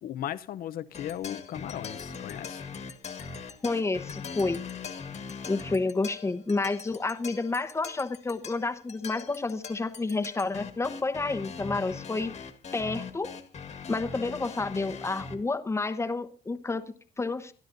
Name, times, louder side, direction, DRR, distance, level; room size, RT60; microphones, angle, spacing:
voice 1, 0.0-2.6, left 11 dB, 60° left, 0.8 m, -37 dB
sound 1, 0.9-15.4, left 5 dB, 40° left, 1.6 m, -41 dB
voice 2, 3.6-4.6 5.5-12.3 12.7-13.3 13.9-17.5, left 3 dB, 15° left, 1.1 m, -30 dB
24.0 x 12.0 x 2.7 m
cardioid pair, 110°, 17 cm